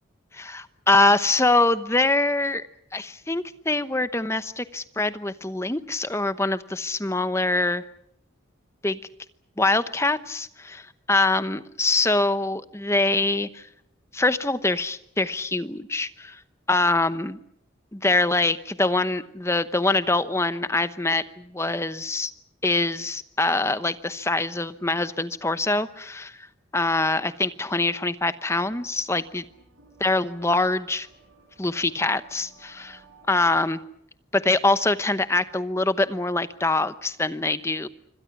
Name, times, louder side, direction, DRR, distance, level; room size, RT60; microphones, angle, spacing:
voice 1, 0.3-2.6 2.9-7.8 8.8-9.0 9.6-13.7 14.1-16.4 16.7-17.4 17.9-22.3 22.6-26.4 26.7-29.4 30.0-31.1 31.6-33.0 33.3-33.8 34.3-37.9, left 2 dB, 15° left, 13 dB, 0.9 m, -24 dB
sound 1, 28.6-33.6, right 3 dB, 85° right, 6.7 m, -56 dB
27.0 x 25.0 x 6.0 m, 0.71 s
head